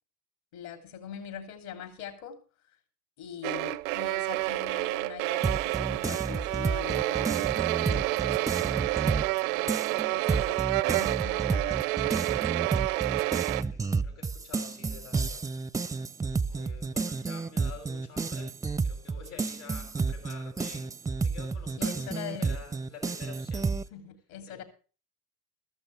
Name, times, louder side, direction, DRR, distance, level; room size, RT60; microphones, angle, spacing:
voice 1, 0.5-2.4 3.2-11.8 21.8-22.5 23.9-24.6, left 9 dB, 65° left, 8 dB, 3.0 m, -43 dB
sound 1, 3.4-13.6, right 20 dB, 65° right, 0.6 m, -29 dB
sound 2, 5.4-9.4 9.7-23.9, right 4 dB, 10° right, 0.5 m, -31 dB
voice 2, 13.2-15.6 16.2-18.5 18.8-23.9 24.3-24.6, left 5 dB, 85° left, 3 dB, 6.5 m, -49 dB
14.5 x 13.5 x 3.2 m, 0.36 s
hypercardioid pair, 75°, 44 cm